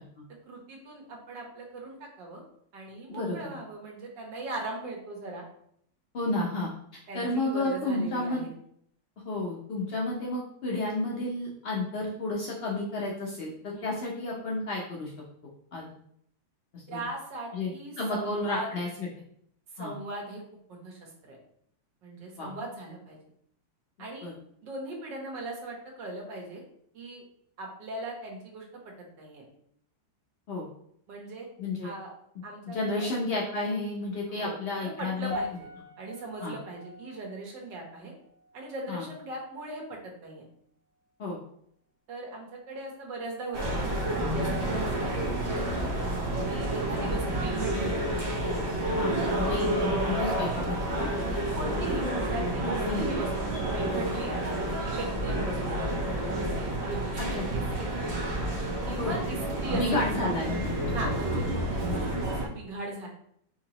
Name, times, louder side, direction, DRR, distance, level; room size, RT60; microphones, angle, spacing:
voice 1, 0.4-2.4 2.7-5.4 7.1-8.5 13.7-13.9 16.9-18.7 19.7-20.4 20.7-21.4 22.0-23.2 24.0-24.3 24.6-26.6 26.9-27.2 27.6-28.6 29.2-29.5 31.1-31.5 31.8-32.1 32.4-33.1 34.3-34.5 35.0-35.7 36.0-38.1 38.5-40.4 42.1-43.9 44.2-45.2 45.6-45.9 46.5-48.0 49.1-49.3 51.5-58.2 58.8-60.5 60.9-63.1, right 2 dB, 75° right, -1 dB, 1.8 m, -39 dB
voice 2, 3.1-3.5 6.1-6.7 7.1-8.4 9.2-15.1 15.7-15.9 16.7-17.0 17.5-19.1 19.8-19.9 22.4-22.5 24.2-24.3 30.5-30.6 31.6-31.9 32.7-35.3 36.4-36.5 38.9-39.0 41.2-41.4 48.9-51.1 52.6-53.1 54.2-54.3 57.2-57.4 58.9-59.2 59.7-60.7 61.3-61.4, left 2 dB, 75° left, -2 dB, 0.5 m, -31 dB
sound 1, 35.3-39.7 39.9-40.3 41.0-41.1, left 1 dB, 5° left, 0.5 m, -43 dB
sound 2, 43.5-62.5, right 1 dB, 45° right, 1.2 m, -29 dB
5.5 x 2.9 x 2.9 m, 0.68 s
omnidirectional pair, 2.0 m